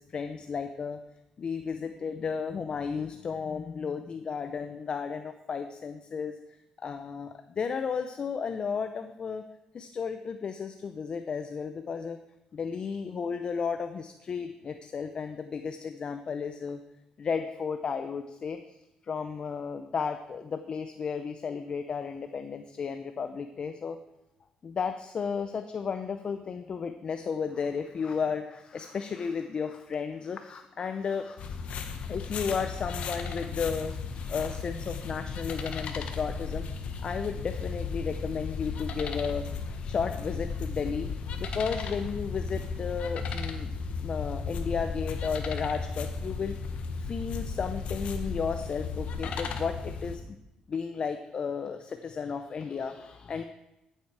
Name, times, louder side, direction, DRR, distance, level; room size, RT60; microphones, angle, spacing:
voice 1, 0.1-1.0 1.4-6.3 6.8-9.4 9.7-12.2 12.5-16.8 17.2-18.6 19.1-24.0 24.6-31.7 32.1-36.6 37.0-39.6 39.8-41.1 41.4-43.7 44.0-46.5 46.9-50.4 50.7-53.4, left 6 dB, 45° left, 8 dB, 0.6 m, -33 dB
sound 1, 31.4-50.2, left 5 dB, 70° left, 1.1 m, -35 dB
13.5 x 7.3 x 4.6 m, 0.93 s
cardioid pair, 115°, 2 cm